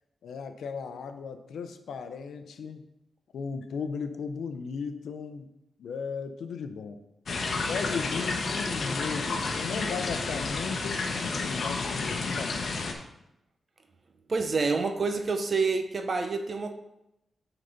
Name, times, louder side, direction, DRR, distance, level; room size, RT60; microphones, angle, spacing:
voice 1, 0.2-2.9 3.3-5.5 5.8-7.0 7.7-11.0 11.4-13.0, left 5 dB, 90° left, 8 dB, 0.6 m, -36 dB
sound 1, 7.3-12.9, left 3 dB, 60° left, 0.9 m, -31 dB
voice 2, 14.3-16.7, right 4 dB, 45° right, 6 dB, 0.7 m, -27 dB
7.5 x 4.0 x 5.3 m, 0.87 s
cardioid pair, 100°, 0 cm